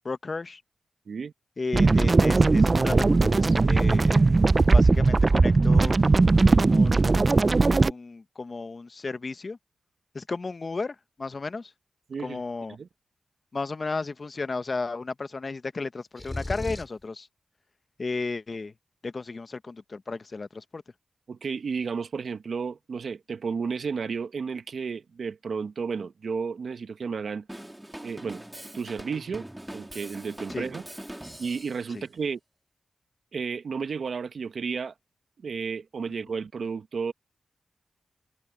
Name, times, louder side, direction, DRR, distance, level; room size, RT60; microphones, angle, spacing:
voice 1, 0.0-0.6 1.6-4.3 4.7-5.9 6.7-7.5 7.9-9.6 10.1-11.7 12.2-12.8 13.5-17.3 18.0-18.7 19.0-20.8 30.5-30.7 31.9-32.0, left 3 dB, 50° left, 1.0 m, -34 dB
sound 1, 1.7-7.9, right 3 dB, 45° right, 0.5 m, -19 dB
voice 2, 12.1-12.4 12.7-12.9 21.3-27.5 28.0-28.4 28.7-29.5 29.7-30.8 31.4-32.4 33.3-34.9 35.4-37.1, right 5 dB, 75° right, 1.2 m, -32 dB
sound 2, 16.2-17.0, left 2 dB, 25° left, 3.3 m, -34 dB
Drum kit / Drum, 27.5-31.9, right 1 dB, 10° right, 2.6 m, -42 dB
cardioid pair, 50°, 0 cm